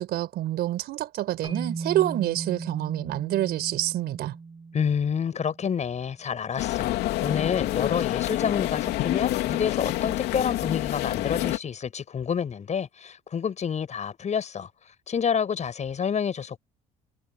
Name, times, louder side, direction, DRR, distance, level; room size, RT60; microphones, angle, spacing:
voice 1, 0.0-4.3, right 14 dB, 65° right, 4.9 m, -27 dB
sound 1, 1.4-5.7, right 4 dB, 30° right, 7.6 m, -37 dB
voice 2, 4.7-14.7 15.1-16.6, left 7 dB, 40° left, 7.9 m, -28 dB
sound 2, 6.6-11.6, left 16 dB, 75° left, 3.2 m, -27 dB
supercardioid pair, 80°, 17 cm